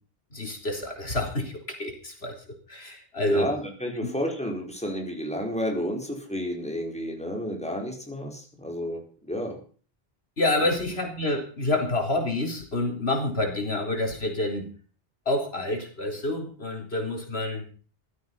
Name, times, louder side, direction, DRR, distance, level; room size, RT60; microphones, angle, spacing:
voice 1, 0.3-2.4 2.7-3.5 10.4-14.7 15.3-17.6, left 1 dB, 80° left, 3 dB, 4.3 m, -28 dB
voice 2, 3.3-9.6 10.6-10.7, equal, 5° left, 1 dB, 4.5 m, -31 dB
16.0 x 13.5 x 5.6 m, 0.40 s
omnidirectional pair, 1.0 m